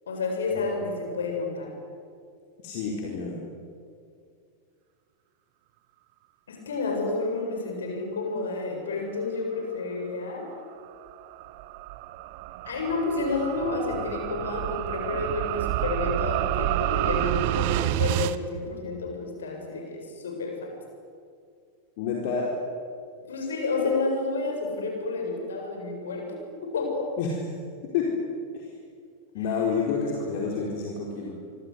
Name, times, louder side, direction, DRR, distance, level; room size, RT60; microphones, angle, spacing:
voice 1, 0.1-1.7 6.5-10.5 12.6-20.7 23.2-27.1 29.4-29.5, left 3 dB, 65° left, 2 dB, 7.7 m, -30 dB
voice 2, 2.6-3.4 22.0-22.5 27.2-27.4 27.9-28.1 28.5-28.7 29.3-31.3, left 5 dB, 50° left, -1 dB, 4.4 m, -28 dB
sound 1, 10.5-18.4, right 15 dB, 50° right, 1.1 m, -29 dB
26.5 x 25.0 x 8.3 m, 2.3 s
figure-of-eight pair, 90°, 0 cm